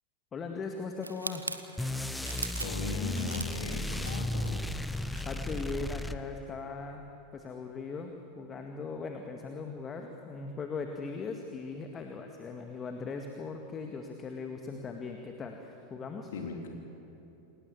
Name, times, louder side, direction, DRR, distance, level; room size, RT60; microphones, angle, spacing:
voice 1, 0.3-1.4 5.2-7.0 7.3-16.3, left 4 dB, 25° left, 4 dB, 1.9 m, -39 dB
sound 1, 1.0-5.8 6.1-6.3, right 3 dB, 85° right, 1.0 m, -42 dB
sound 2, 1.8-6.6, left 1 dB, 5° left, 1.0 m, -35 dB
voice 2, 2.6-4.7 16.3-16.7, left 4 dB, 65° left, 2 dB, 3.5 m, -38 dB
28.5 x 19.5 x 7.8 m, 2.9 s
figure-of-eight pair, 85°, 0 cm